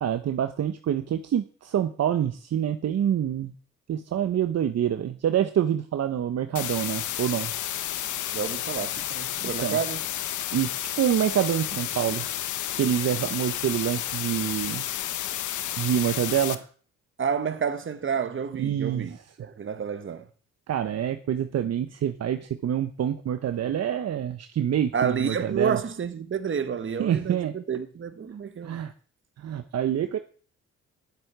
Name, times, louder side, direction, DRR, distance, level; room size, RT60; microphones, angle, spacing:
voice 1, 0.0-3.5 3.9-7.5 9.4-9.8 10.5-12.2 12.8-14.9 15.8-16.7 18.6-19.1 20.7-25.8 27.0-27.5 28.6-28.9 29.4-30.2, right 10 dB, 55° right, 1.1 m, -26 dB
sound 1, 6.6-16.6, left 12 dB, 80° left, 1.1 m, -31 dB
voice 2, 8.3-10.0 17.2-20.2 24.9-28.8, right 7 dB, 40° right, 1.6 m, -30 dB
10.5 x 7.8 x 9.4 m
cardioid pair, 90°, 30 cm